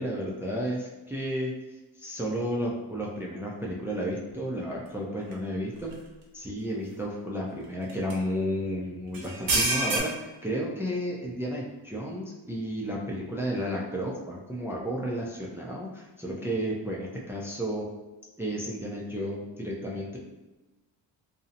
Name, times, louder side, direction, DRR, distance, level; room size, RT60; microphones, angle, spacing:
voice 1, 0.0-1.5 2.0-5.9 6.3-17.9 18.4-20.2, equal, 5° right, -3 dB, 0.4 m, -32 dB
sound 1, 5.3-5.4 5.9-6.0 7.9-8.1 9.1-10.0, right 2 dB, 50° right, 0.7 m, -26 dB
2.6 x 2.0 x 2.7 m, 1.1 s
supercardioid pair, 65°, 46 cm